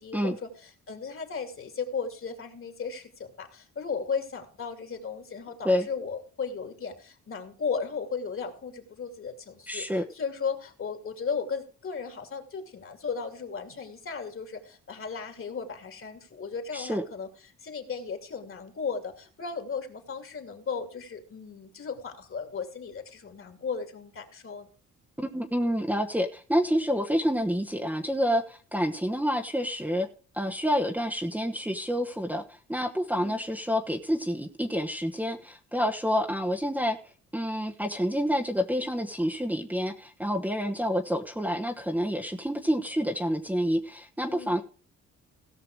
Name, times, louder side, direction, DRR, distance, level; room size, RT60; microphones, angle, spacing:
voice 1, 0.0-9.9 10.1-17.3 17.6-24.7 33.1-33.4 44.3-44.6, left 5 dB, 45° left, 6 dB, 2.6 m, -35 dB
voice 2, 9.7-10.0 16.7-17.0 25.2-30.1 30.3-32.4 32.7-37.0 37.3-44.6, equal, 5° right, 1 dB, 1.2 m, -28 dB
17.5 x 5.9 x 4.7 m, 0.38 s
cardioid pair, 90°, 30 cm